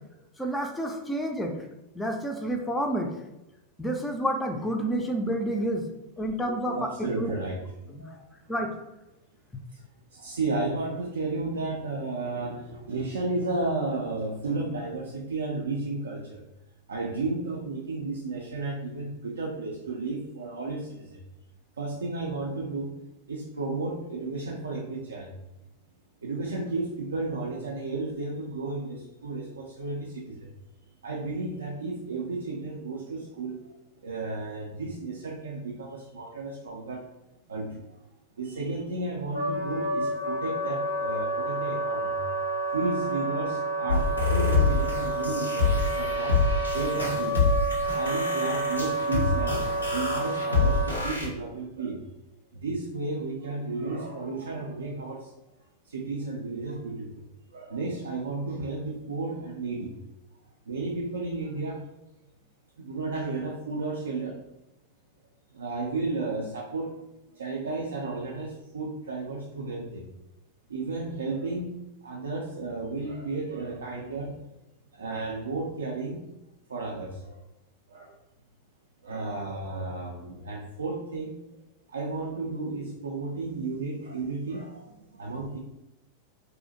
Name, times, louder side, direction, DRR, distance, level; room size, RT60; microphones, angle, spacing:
voice 1, 0.4-1.5 1.9-3.1 3.8-5.8 6.2-6.8 7.2-7.3 7.9-8.0 8.5-8.7, right 1 dB, 10° left, 2 dB, 0.3 m, -29 dB
voice 2, 6.8-7.6 7.9-8.2 9.7-9.8 10.1-16.5 16.9-21.2 21.8-23.0 23.3-25.3 26.2-30.5 31.0-33.7 34.0-37.1 37.5-38.0 38.4-42.2 42.7-47.5 47.9-52.1 52.5-55.3 55.8-57.2 57.5-60.0 60.7-61.8 62.8-64.4 65.5-67.1 67.3-70.1 70.7-74.4 74.9-76.2 76.7-77.4 77.9-78.1 79.0-81.4 81.9-85.6, right 3 dB, 70° right, -2 dB, 0.3 m, -33 dB
Wind instrument woodwind instrument, 39.3-50.9, right 2 dB, 90° right, 0.7 m, -29 dB
sound 1, 43.9-51.3, left 4 dB, 85° left, 0.6 m, -26 dB
2.5 x 2.1 x 2.6 m, 0.95 s
figure-of-eight pair, 90°, 0 cm